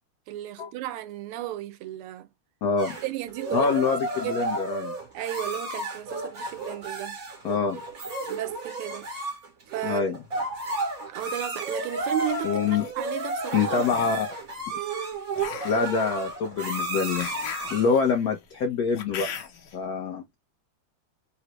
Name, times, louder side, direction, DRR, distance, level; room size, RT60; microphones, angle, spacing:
voice 1, 0.3-2.3 3.0-3.7 4.2-4.5 5.1-7.2 8.3-9.1 9.7-10.0 11.0-13.9, right 14 dB, 85° right, 1.5 m, -34 dB
voice 2, 2.6-2.9 3.5-4.9 7.4-7.8 9.8-10.2 12.4-12.9 13.5-14.3 15.6-17.3 17.7-19.3 19.7-20.2, left 5 dB, 85° left, 0.8 m, -25 dB
sound 1, 2.8-18.0, right 2 dB, 50° right, 1.2 m, -32 dB
sound 2, 12.4-12.9 13.8-14.4 15.3-19.7, left 8 dB, 65° left, 1.2 m, -39 dB
3.7 x 2.1 x 2.9 m
omnidirectional pair, 2.4 m